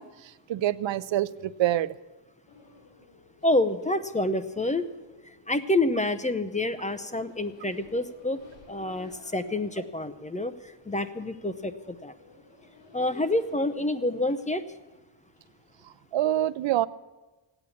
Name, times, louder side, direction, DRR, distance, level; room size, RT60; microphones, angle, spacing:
voice 1, 0.0-1.9 16.1-16.9, right 13 dB, 85° right, 17 dB, 0.6 m, -26 dB
sound 1, 2.5-16.1, left 3 dB, 80° left, 2.6 m, -55 dB
voice 2, 3.4-4.9 5.2-8.4 8.7-12.1 12.9-14.7, left 1 dB, 15° left, 11 dB, 0.7 m, -28 dB
16.5 x 9.0 x 8.4 m, 1.2 s
wide cardioid pair, 120°, 44 cm